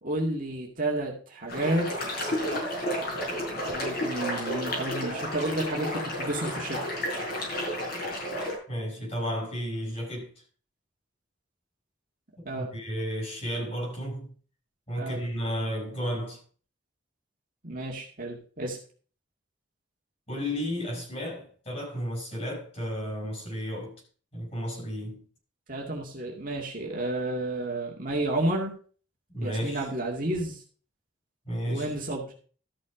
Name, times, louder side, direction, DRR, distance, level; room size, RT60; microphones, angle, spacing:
voice 1, 0.0-1.9 2.2-2.4 3.0-6.8 12.5-12.7 15.0-15.2 17.6-18.8 25.7-28.7 29.4-30.6 31.7-32.3, right 1 dB, 45° right, 2.2 m, -31 dB
sound 1, 1.5-8.6, equal, 50° left, 6.0 m, -31 dB
voice 2, 8.7-10.3 12.4-14.3 14.9-16.4 20.3-24.0 24.3-25.2 29.3-29.9 31.5-31.9, equal, 30° left, 5.9 m, -33 dB
13.5 x 6.2 x 4.9 m
head